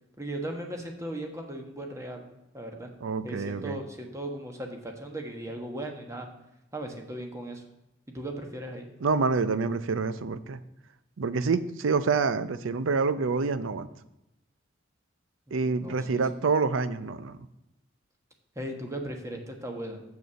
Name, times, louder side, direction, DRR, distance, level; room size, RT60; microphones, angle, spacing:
voice 1, 0.2-2.3 2.5-2.9 3.2-6.3 6.7-7.6 8.1-8.9 15.5-16.2 18.5-20.0, right 1 dB, 15° right, 3 dB, 1.2 m, -37 dB
voice 2, 3.0-3.8 9.0-10.6 11.2-13.9 15.5-17.3, right 4 dB, 85° right, 14 dB, 0.5 m, -27 dB
6.9 x 6.3 x 6.8 m, 0.90 s
head